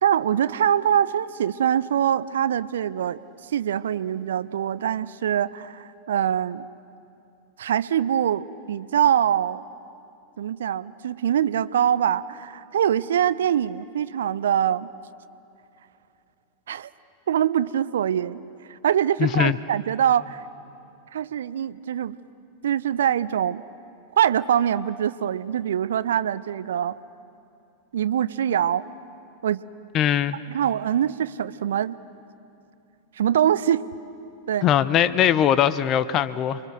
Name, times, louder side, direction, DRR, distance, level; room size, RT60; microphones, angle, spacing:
voice 1, 0.0-3.2 3.5-6.7 7.6-9.6 10.4-14.9 16.7-16.9 17.3-18.4 18.7-20.4 21.1-22.2 22.6-23.6 24.1-26.9 27.9-28.8 29.4-29.6 30.5-32.0 33.2-33.8 34.5-34.7, right 9 dB, 60° right, 0.6 m, -23 dB
voice 2, 19.2-19.6 29.9-30.4 34.6-36.6, left 10 dB, 35° left, 0.7 m, -20 dB
29.0 x 23.0 x 6.7 m
figure-of-eight pair, 90°, 0 cm